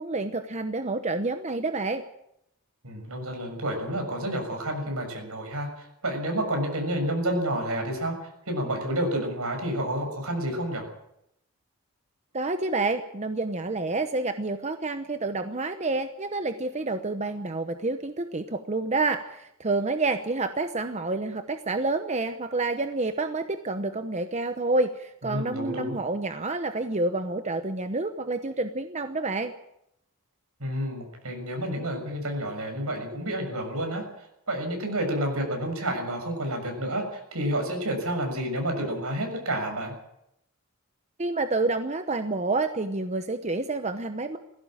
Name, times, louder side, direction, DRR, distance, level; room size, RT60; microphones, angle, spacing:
voice 1, 0.0-2.0 12.3-29.5 41.2-44.4, right 3 dB, 30° right, 8 dB, 0.9 m, -28 dB
voice 2, 2.8-10.8 25.2-25.9 30.6-34.0 34.5-39.9, right 1 dB, 75° right, 4 dB, 6.7 m, -30 dB
18.5 x 15.5 x 8.9 m, 0.79 s
head